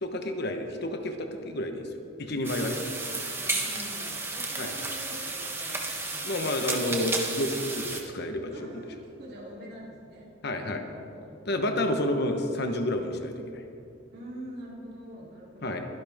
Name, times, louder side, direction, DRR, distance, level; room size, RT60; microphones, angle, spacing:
voice 1, 0.0-1.9 2.2-2.8 4.6-4.7 6.2-8.8 10.4-10.8 11.5-13.6 15.6-15.8, left 1 dB, 50° left, 5 dB, 1.1 m, -30 dB
sound 1, 2.4-8.0, right 3 dB, 10° right, 1.2 m, -33 dB
voice 2, 3.4-6.7 8.5-11.3 14.1-15.8, equal, 50° right, -5 dB, 3.3 m, -45 dB
22.5 x 11.0 x 3.6 m, 2.7 s
head